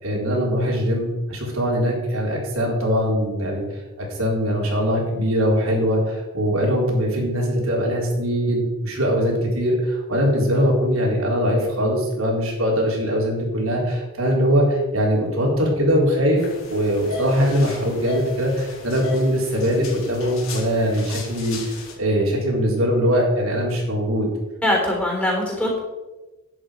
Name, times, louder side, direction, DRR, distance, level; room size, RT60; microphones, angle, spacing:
voice 1, 0.0-3.6 4.0-16.4 16.7-21.6 22.0-24.3, equal, 90° right, -1 dB, 3.8 m, -21 dB
sound 1, 16.4-21.9, left 3 dB, 90° left, 3.8 m, -36 dB
voice 2, 24.6-25.8, left 1 dB, 5° left, -2 dB, 3.5 m, -22 dB
11.0 x 9.8 x 5.1 m, 1.1 s
head